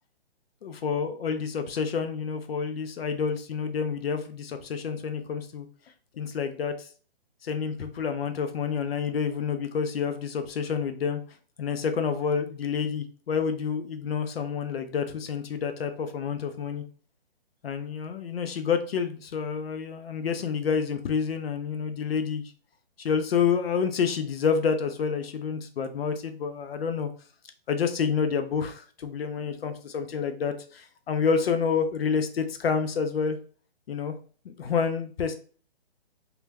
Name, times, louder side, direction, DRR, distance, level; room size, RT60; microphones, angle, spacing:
voice 1, 0.6-5.7 6.2-6.9 7.4-11.2 11.6-16.8 17.6-22.4 23.0-27.1 27.7-33.4 33.9-34.1 34.5-35.3, left 6 dB, 65° left, 8 dB, 0.5 m, -28 dB
2.2 x 2.2 x 3.3 m, 0.40 s
hypercardioid pair, 150°, 32 cm